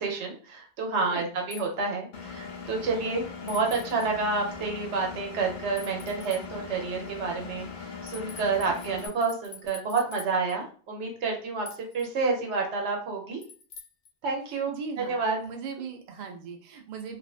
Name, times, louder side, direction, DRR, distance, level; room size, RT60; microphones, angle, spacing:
voice 1, 0.0-13.4 14.2-15.4, right 4 dB, 75° right, 1 dB, 1.0 m, -29 dB
sound 1, 1.5-1.7 3.5-4.1 5.8-6.4 8.0-10.6 11.6-12.1 13.4-14.1, left 6 dB, 90° left, 1.0 m, -46 dB
Engine, 2.1-9.1, left 5 dB, 60° left, 0.5 m, -40 dB
voice 2, 14.5-17.2, right 5 dB, 55° right, 3 dB, 0.5 m, -39 dB
2.5 x 2.2 x 2.3 m, 0.42 s
omnidirectional pair, 1.2 m